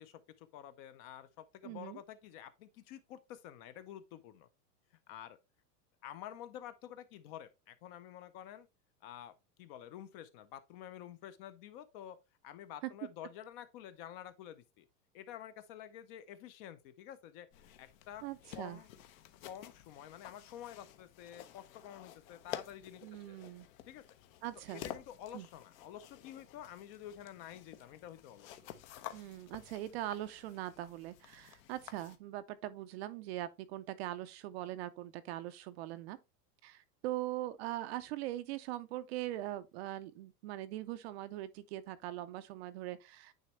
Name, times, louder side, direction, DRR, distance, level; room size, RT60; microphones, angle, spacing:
voice 1, 0.0-4.5 5.1-5.4 6.0-8.7 9.0-12.2 12.4-14.9 15.1-17.5 17.8-18.2 18.5-18.9 19.4-23.4 23.9-24.0 24.7-28.7, left 11 dB, 40° left, 0.6 m, -49 dB
voice 2, 1.6-2.0 18.2-18.8 23.0-23.7 24.4-24.8 25.3-25.5 29.1-36.2 36.6-43.3, right 14 dB, 45° right, 0.5 m, -41 dB
sound 1, 17.5-32.2, left 11 dB, 55° left, 0.9 m, -51 dB
9.2 x 3.4 x 3.0 m
supercardioid pair, 150°, 47 cm